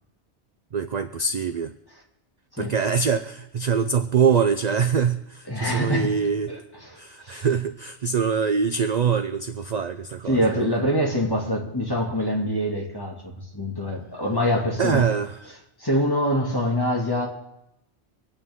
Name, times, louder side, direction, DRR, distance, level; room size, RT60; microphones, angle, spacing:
voice 1, 0.7-1.7 2.6-6.5 7.0-10.7 14.8-15.3, right 6 dB, 50° right, 9 dB, 0.6 m, -24 dB
voice 2, 5.5-6.2 6.5-7.5 10.3-13.2 13.5-15.0 15.8-17.3, equal, 20° left, -1 dB, 2.3 m, -25 dB
25.5 x 8.7 x 3.7 m, 0.83 s
omnidirectional pair, 1.1 m